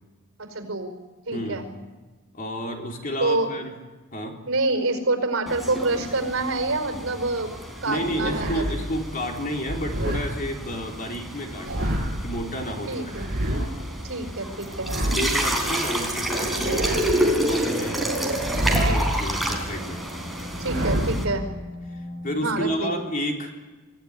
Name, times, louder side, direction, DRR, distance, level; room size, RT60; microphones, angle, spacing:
voice 1, 0.4-0.9 1.2-1.6 3.2-3.5 4.4-7.5 7.8-8.6 12.9-13.3 14.0-14.9 20.6-21.5 22.4-23.0, right 2 dB, 70° right, 6 dB, 5.0 m, -26 dB
voice 2, 1.3-1.7 2.3-3.7 4.1-4.4 7.9-13.3 15.1-20.1 21.9-23.5, equal, 40° left, 1 dB, 3.7 m, -31 dB
sound 1, 5.5-21.2, right 1 dB, ahead, 3.9 m, -29 dB
sound 2, 7.9-8.8 9.6-10.3 11.4-12.3 13.1-13.7 14.6-15.5 16.3-17.3 18.3-19.2 20.4-21.3, equal, 45° right, 6.4 m, -27 dB
sound 3, 12.0-22.8, left 2 dB, 65° left, 7.7 m, -44 dB
25.0 x 16.5 x 9.8 m, 1.2 s
head